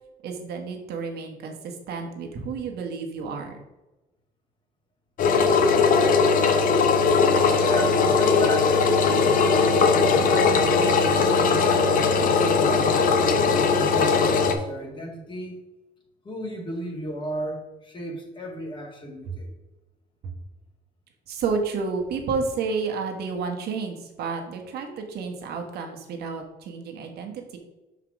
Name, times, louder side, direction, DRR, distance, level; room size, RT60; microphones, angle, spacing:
voice 1, 0.2-3.6 19.3-19.4 21.3-27.6, right 4 dB, 70° right, 4 dB, 1.4 m, -31 dB
Engine, 5.2-14.5, left 5 dB, 55° left, 0.9 m, -19 dB
voice 2, 7.6-8.8 9.2-13.1 13.7-15.6 16.2-19.5, equal, 30° left, -1 dB, 1.8 m, -34 dB
5.9 x 4.9 x 4.8 m, 1.0 s
cardioid pair, 110°, 17 cm